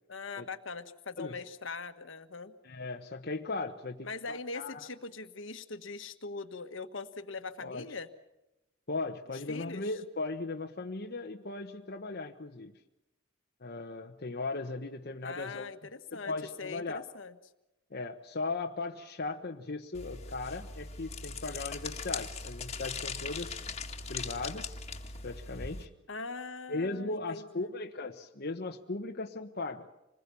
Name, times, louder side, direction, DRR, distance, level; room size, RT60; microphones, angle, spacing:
voice 1, 0.1-2.5 4.0-8.1 9.3-9.8 15.2-17.3 26.1-27.7, left 4 dB, 65° left, 9 dB, 1.5 m, -41 dB
voice 2, 2.6-4.9 7.6-7.9 8.9-12.7 13.6-15.7 16.1-17.1 17.9-23.6 24.1-24.8 25.2-25.9 26.7-29.9, left 3 dB, 50° left, 2 dB, 1.2 m, -37 dB
sound 1, 19.9-25.9, left 4 dB, 35° left, 2.0 m, -40 dB
27.0 x 21.0 x 7.0 m, 0.96 s
head